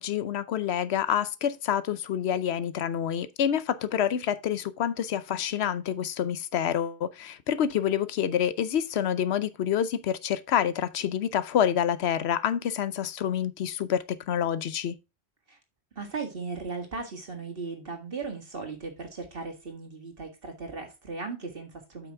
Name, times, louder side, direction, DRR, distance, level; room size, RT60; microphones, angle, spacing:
voice 1, 0.0-14.9, left 9 dB, 80° left, 0.9 m, -27 dB
voice 2, 16.0-22.1, right 4 dB, 60° right, 2.0 m, -37 dB
8.2 x 6.0 x 3.5 m
omnidirectional pair, 1.1 m